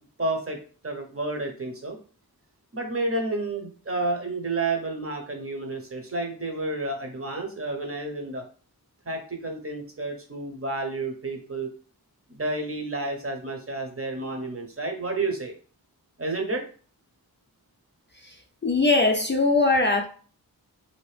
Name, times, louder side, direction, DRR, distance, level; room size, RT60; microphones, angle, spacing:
voice 1, 0.2-0.6 0.8-2.0 2.7-8.4 9.1-11.7 12.3-15.5 16.2-16.6, right 2 dB, 35° right, 0.8 m, -30 dB
voice 2, 18.6-20.0, left 3 dB, 30° left, 0.4 m, -21 dB
2.8 x 2.5 x 3.3 m
wide cardioid pair, 70°, 38 cm